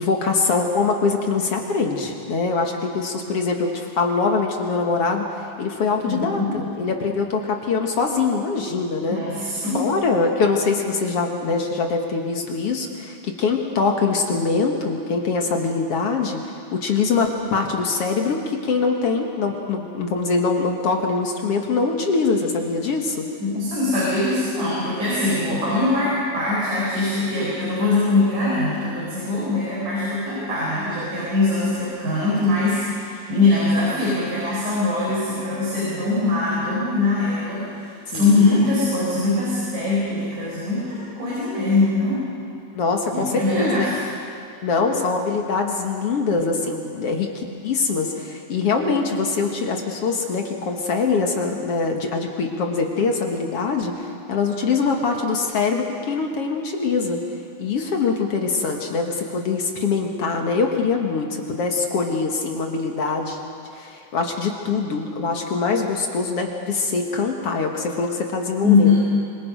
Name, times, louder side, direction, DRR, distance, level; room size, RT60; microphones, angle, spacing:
voice 1, 0.0-5.3 5.6-9.2 9.7-23.3 38.1-38.6 42.7-43.9 44.6-57.2 57.6-63.4 63.7-68.9, left 4 dB, 55° left, 2 dB, 2.2 m, -23 dB
voice 2, 6.1-6.5 9.1-9.8 23.4-42.2 43.1-44.0 68.6-68.9, left 3 dB, 70° right, -7 dB, 6.3 m, -22 dB
26.0 x 25.0 x 5.3 m, 2.4 s
omnidirectional pair, 3.7 m